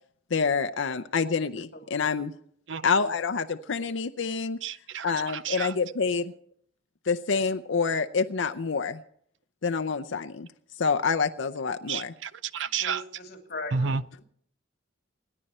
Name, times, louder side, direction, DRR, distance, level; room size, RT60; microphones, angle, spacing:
voice 1, 0.3-2.3 2.8-4.6 5.0-6.3 7.1-9.0 9.6-10.5 10.8-12.1, left 5 dB, 75° left, 7 dB, 0.6 m, -27 dB
voice 2, 4.6-5.8 11.9-13.0 13.7-14.0, right 5 dB, 70° right, 16 dB, 0.6 m, -31 dB
voice 3, 12.8-13.9, left 2 dB, 50° left, 3 dB, 3.1 m, -38 dB
28.0 x 10.0 x 4.3 m, 0.67 s
head